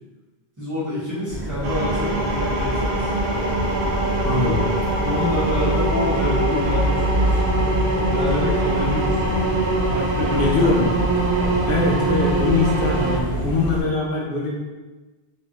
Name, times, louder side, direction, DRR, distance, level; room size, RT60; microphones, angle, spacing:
voice 1, 0.6-3.1 4.4-4.6 5.0-7.4 8.1-9.4 9.9-10.7 11.4-11.6, left 1 dB, 20° right, -10 dB, 1.1 m, -27 dB
sound 1, 1.3-13.8, equal, 85° left, 1.7 m, -26 dB
sound 2, 1.6-13.2, right 2 dB, 60° right, 0.8 m, -24 dB
voice 2, 4.2-4.6 10.4-11.0 11.7-14.6, left 3 dB, 65° left, -3 dB, 0.7 m, -22 dB
3.2 x 2.6 x 2.9 m, 1.2 s
omnidirectional pair, 1.0 m